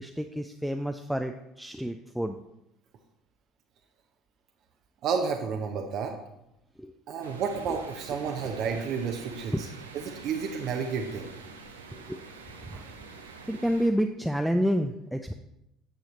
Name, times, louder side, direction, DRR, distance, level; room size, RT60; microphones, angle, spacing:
voice 1, 0.0-2.4 6.8-6.9 9.5-9.6 11.9-12.2 12.6-12.8 13.5-15.3, equal, ahead, 6 dB, 0.4 m, -29 dB
voice 2, 5.0-6.1 7.1-9.7 9.9-11.3 12.7-12.9, right 6 dB, 55° right, 3 dB, 0.8 m, -31 dB
sound 1, 7.2-13.9, right 4 dB, 90° right, 0.7 m, -46 dB
8.9 x 6.4 x 3.1 m, 0.85 s
hypercardioid pair, 60°, 0 cm